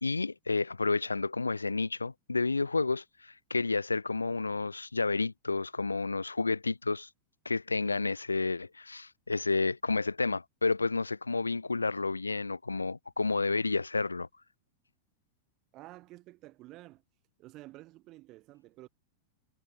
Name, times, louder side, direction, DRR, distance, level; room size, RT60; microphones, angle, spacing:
voice 1, 0.0-7.1 7.4-14.3, left 3 dB, 80° left, 0.6 m, -30 dB
voice 2, 15.7-17.0 17.4-18.9, right 18 dB, 40° right, 4.5 m, -51 dB
figure-of-eight pair, 90°, 0 cm